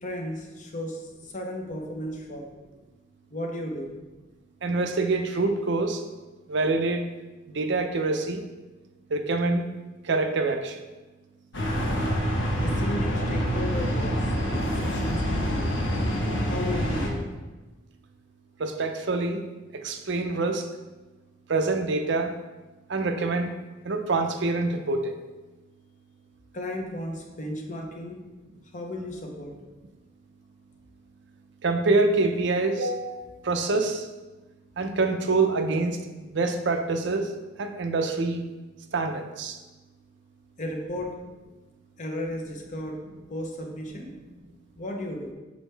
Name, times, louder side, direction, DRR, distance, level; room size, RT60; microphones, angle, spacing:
voice 1, 0.0-2.5 3.3-4.0 12.6-14.3 14.6-15.7 16.4-17.3 26.5-28.3 28.7-29.5 40.6-41.1 42.0-43.0 43.3-44.1 44.8-45.3, left 1 dB, 40° left, 2 dB, 0.8 m, -34 dB
voice 2, 4.6-6.0 6.5-7.1 7.5-8.4 9.1-9.7 10.0-10.8 18.6-19.4 19.7-20.7 21.5-22.3 22.9-23.5 23.8-25.1 31.6-34.1 34.8-37.3 37.6-38.4 38.9-39.6, right 3 dB, 60° right, 6 dB, 0.6 m, -26 dB
sound 1, 11.5-17.1, equal, 70° left, 1.1 m, -26 dB
6.2 x 5.4 x 3.3 m, 1.2 s
head